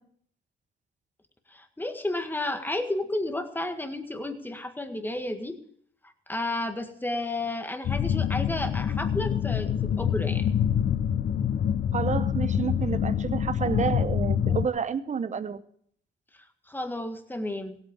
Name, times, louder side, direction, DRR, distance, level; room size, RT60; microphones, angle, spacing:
voice 1, 1.5-5.6 6.3-10.5 16.7-17.8, left 2 dB, 10° left, 1.8 m, -32 dB
sound 1, 7.8-14.7, left 8 dB, 50° left, 0.6 m, -26 dB
voice 2, 11.9-15.6, right 6 dB, 35° right, 0.9 m, -30 dB
16.5 x 8.7 x 7.2 m
cardioid pair, 90°, 20 cm